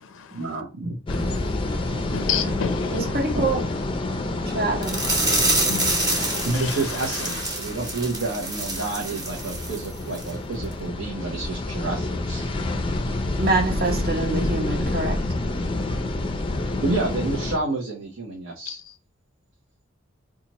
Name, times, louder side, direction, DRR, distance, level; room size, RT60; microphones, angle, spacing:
voice 1, 0.3-1.0 1.9-2.0 2.9-3.0 3.3-3.5 6.4-12.4 16.8-18.8, right 3 dB, 80° right, 0.8 m, -29 dB
sound 1, 1.1-17.6, left 2 dB, 25° left, 0.4 m, -28 dB
voice 2, 1.4-3.1 5.7-5.9 6.6-6.8 18.7-18.8, left 8 dB, 85° left, 0.4 m, -31 dB
voice 3, 2.9-3.6 4.4-5.0 13.4-15.2, right 3 dB, 50° right, 0.9 m, -25 dB
sound 2, 4.8-9.9 10.1-10.3 10.7-10.8, right 2 dB, 20° right, 0.9 m, -27 dB
4.0 x 2.4 x 2.9 m
head